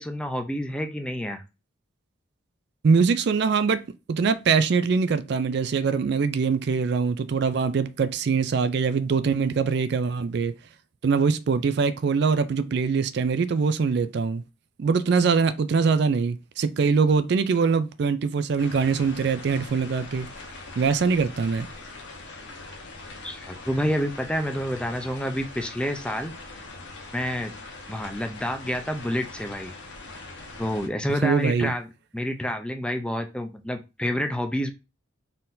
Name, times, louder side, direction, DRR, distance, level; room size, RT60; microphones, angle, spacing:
voice 1, 0.0-1.4 23.2-26.3 27.1-27.5 27.9-29.7 30.6-31.9 32.1-34.7, equal, 5° left, 0.5 m, -28 dB
voice 2, 2.8-3.8 4.1-10.5 11.0-14.4 14.8-20.3 20.8-21.7 31.2-31.7, right 5 dB, 55° right, 0.3 m, -23 dB
sound 1, 18.6-30.9, left 3 dB, 60° left, 1.0 m, -42 dB
4.3 x 3.8 x 2.6 m
head